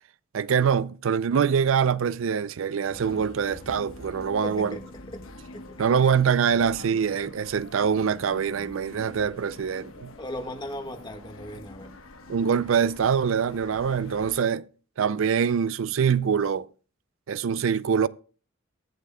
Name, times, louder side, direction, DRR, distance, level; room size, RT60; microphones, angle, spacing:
voice 1, 0.3-4.8 5.8-10.1 12.3-14.6 15.0-16.7 17.3-18.1, right 7 dB, 70° right, 0.4 m, -24 dB
sound 1, 2.9-14.4, left 2 dB, 80° left, 1.1 m, -45 dB
voice 2, 4.4-5.2 5.5-5.6 6.0-6.1 10.2-11.9, equal, 20° left, 1.6 m, -37 dB
22.5 x 7.8 x 2.2 m
head